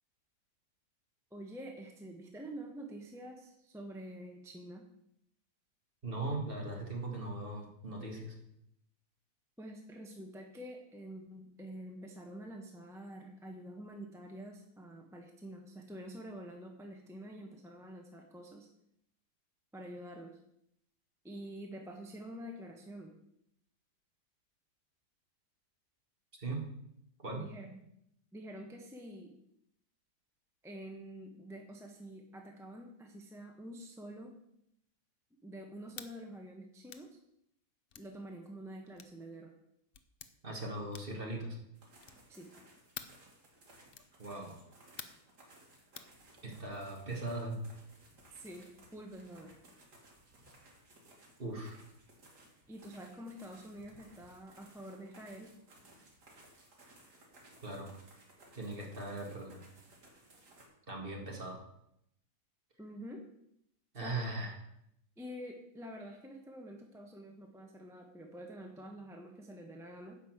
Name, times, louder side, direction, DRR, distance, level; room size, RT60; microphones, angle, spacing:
voice 1, 1.3-4.9 9.6-18.7 19.7-20.4 21.2-23.1 27.4-27.8 28.3-29.3 30.6-34.3 35.4-37.2 37.9-39.5 42.3-42.5 48.3-49.5 52.7-55.5 62.8-63.2 64.0-64.3 65.2-70.2, equal, ahead, 2 dB, 1.0 m, -47 dB
voice 2, 6.0-8.4 26.4-26.6 27.2-27.4 40.4-41.6 44.2-44.6 46.4-47.6 51.4-51.8 57.6-57.9 58.5-59.6 60.9-61.6 63.9-64.5, right 2 dB, 35° right, 0 dB, 2.2 m, -39 dB
sound 1, 35.9-36.1 36.9-37.1 37.9-38.1 39.0-39.2 39.9-40.3 40.9-41.2 42.0-42.3 42.9-43.2 43.9-44.1 45.0-45.3 46.0-46.1, left 7 dB, 55° left, 0.6 m, -48 dB
sound 2, 41.7-60.7, right 1 dB, 80° right, 3.0 m, -60 dB
10.0 x 5.6 x 7.9 m, 0.77 s
omnidirectional pair, 1.8 m